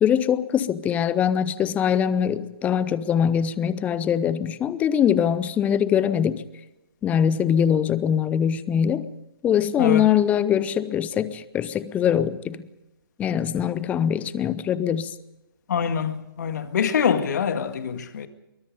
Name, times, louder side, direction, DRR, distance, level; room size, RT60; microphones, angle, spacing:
voice 1, 0.0-6.4 7.0-9.1 9.4-12.6 13.2-15.1, left 8 dB, 10° left, 0.7 m, -22 dB
voice 2, 15.7-18.3, left 7 dB, 50° left, 1.9 m, -24 dB
24.0 x 23.5 x 5.2 m
figure-of-eight pair, 135°, 12 cm